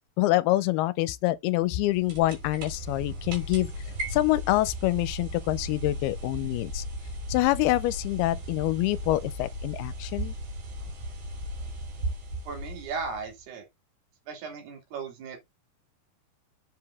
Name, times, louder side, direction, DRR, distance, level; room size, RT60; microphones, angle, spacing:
voice 1, 0.2-3.7 4.1-6.8 7.3-10.3, left 17 dB, 85° left, 2.5 m, -26 dB
sound 1, 1.6-13.4, right 1 dB, 65° right, 5.0 m, -36 dB
voice 2, 12.5-13.7 14.3-15.4, right 5 dB, 85° right, 4.2 m, -36 dB
7.5 x 4.8 x 3.4 m
omnidirectional pair, 4.5 m